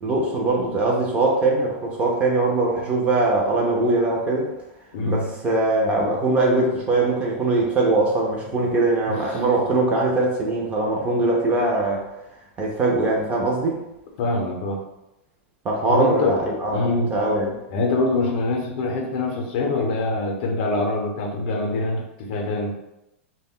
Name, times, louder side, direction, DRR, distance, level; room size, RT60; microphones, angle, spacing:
voice 1, 0.0-4.5 5.0-12.0 12.6-13.8 15.6-17.5, right 2 dB, 15° right, -1 dB, 0.4 m, -21 dB
voice 2, 4.9-5.3 9.1-9.2 9.5-9.7 14.2-14.8 15.9-16.4 16.7-17.1 17.7-22.7, left 2 dB, 50° left, 1 dB, 0.6 m, -24 dB
2.1 x 2.1 x 3.5 m, 0.89 s
supercardioid pair, 160°, 7 cm